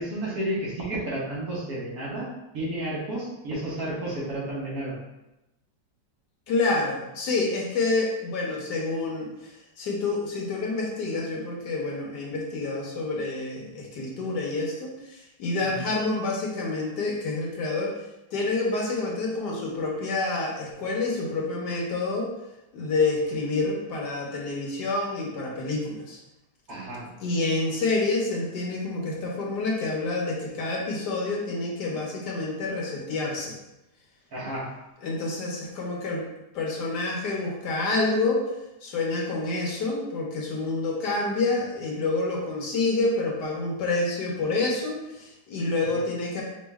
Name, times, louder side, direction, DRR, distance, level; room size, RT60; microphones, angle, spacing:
voice 1, 0.0-2.3 2.5-5.0 15.6-15.8 26.7-27.0 34.3-34.6, right 1 dB, 55° right, -5 dB, 1.5 m, -31 dB
voice 2, 6.5-9.5 9.8-17.9 18.3-22.3 22.7-26.2 27.2-33.5 35.0-36.2 36.5-38.5 38.8-46.4, left 3 dB, 70° left, -2 dB, 1.5 m, -28 dB
5.3 x 2.6 x 3.4 m, 0.94 s
omnidirectional pair, 1.9 m